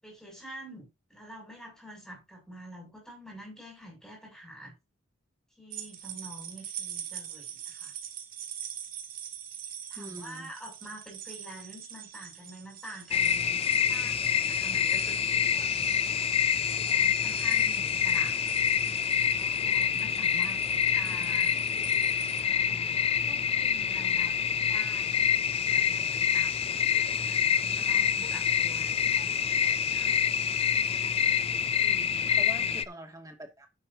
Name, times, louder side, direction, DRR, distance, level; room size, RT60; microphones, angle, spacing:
voice 1, 0.0-4.7 5.6-7.9 9.9-18.4 19.2-21.5 22.4-23.0 23.3-24.4 24.7-26.7 27.3-30.1 32.3-32.8, right 1 dB, 5° left, 7.1 m, -47 dB
sound 1, 5.7-22.4, right 9 dB, 45° right, 1.7 m, -44 dB
voice 2, 10.0-10.5 31.8-33.7, right 1 dB, 15° right, 2.2 m, -44 dB
sound 2, 13.1-32.8, left 7 dB, 30° left, 0.4 m, -27 dB
10.5 x 10.5 x 2.8 m
head